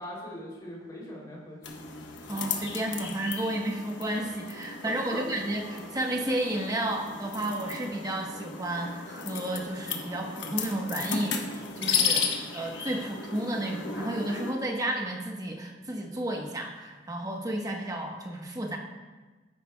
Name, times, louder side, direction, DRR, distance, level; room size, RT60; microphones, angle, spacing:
voice 1, 0.0-1.8 4.8-5.3, equal, 20° left, -5 dB, 3.0 m, -41 dB
sound 1, 1.6-14.5, left 6 dB, 60° left, 1.1 m, -34 dB
voice 2, 2.3-18.8, right 1 dB, 20° right, 1 dB, 1.1 m, -32 dB
13.5 x 10.5 x 2.3 m, 1.3 s
head